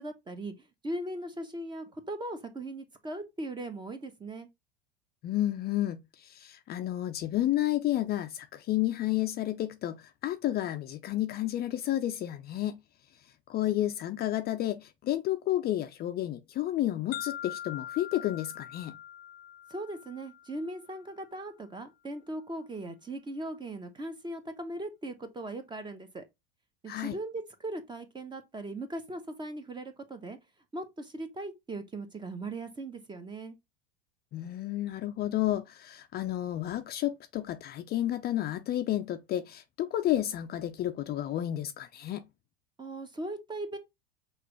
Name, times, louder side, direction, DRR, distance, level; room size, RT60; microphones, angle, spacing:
voice 1, 0.0-4.5 19.7-26.2 26.8-30.4 30.7-33.6 42.8-43.8, right 1 dB, 15° right, 0.8 m, -39 dB
voice 2, 5.2-12.8 13.5-18.9 26.9-27.2 34.3-42.2, left 13 dB, 35° left, 0.5 m, -31 dB
sound 1, 17.1-21.1, left 11 dB, 70° left, 0.7 m, -43 dB
5.8 x 2.5 x 3.0 m
hypercardioid pair, 85°, 30 cm